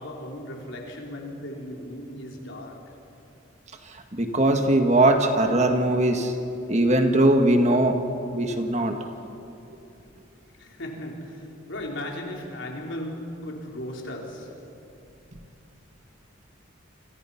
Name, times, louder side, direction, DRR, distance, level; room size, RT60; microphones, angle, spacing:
voice 1, 0.0-3.0 10.5-14.6, left 1 dB, 60° left, 4.3 m, -37 dB
voice 2, 4.1-6.3 6.7-8.0 8.3-9.0, right 1 dB, 30° right, 1.7 m, -20 dB
29.0 x 26.5 x 5.8 m
head